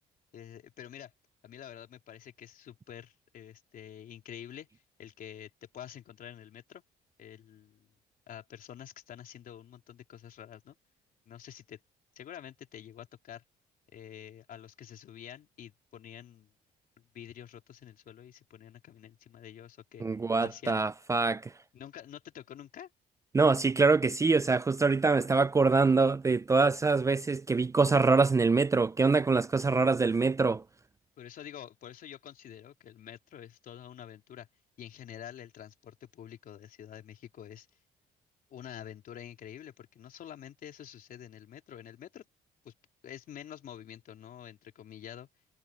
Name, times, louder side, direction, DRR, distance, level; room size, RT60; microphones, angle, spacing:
voice 1, 0.3-1.1 1.4-4.7 5.0-6.8 7.2-7.9 8.3-10.8 11.3-11.8 12.2-13.4 13.9-16.5 17.1-20.1 20.4-20.9 21.7-22.9 31.2-34.5 34.8-37.7 38.5-42.2 42.6-42.7 43.0-45.3, left 10 dB, 55° left, 3.6 m, -47 dB
voice 2, 20.0-21.4 23.3-30.6, right 4 dB, 20° right, 0.5 m, -24 dB
cardioid pair, 110°, 17 cm